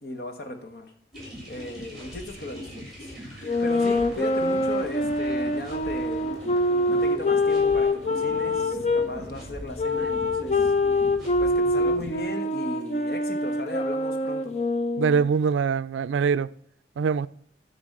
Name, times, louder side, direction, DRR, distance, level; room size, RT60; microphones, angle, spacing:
voice 1, 0.0-0.9 1.5-3.1 3.6-6.3 6.9-10.7 11.4-14.6, left 2 dB, 55° left, 1.3 m, -37 dB
sound 1, 1.1-12.2, equal, ahead, 3.2 m, -41 dB
sound 2, 3.4-9.1 9.8-15.3, left 2 dB, 35° left, 0.7 m, -25 dB
voice 2, 15.0-16.5 17.0-17.3, right 6 dB, 90° right, 0.3 m, -23 dB
9.5 x 4.0 x 6.6 m
head